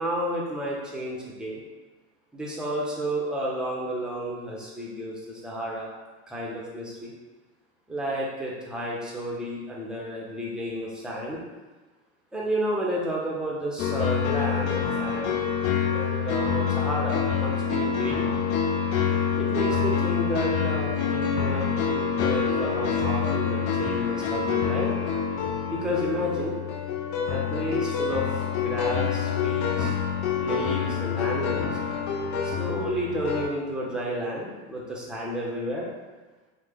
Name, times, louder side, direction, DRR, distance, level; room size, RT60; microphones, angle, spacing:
voice 1, 0.0-1.6 2.3-5.9 6.3-7.1 7.9-11.4 12.3-15.5 15.8-18.3 19.4-24.9 25.7-26.6 27.3-29.9 30.4-31.7 32.4-35.9, equal, ahead, -5 dB, 0.5 m, -31 dB
sound 1, 13.8-33.5, left 7 dB, 80° left, 0.5 m, -26 dB
3.2 x 2.1 x 3.5 m, 1.2 s
supercardioid pair, 125°, 35 cm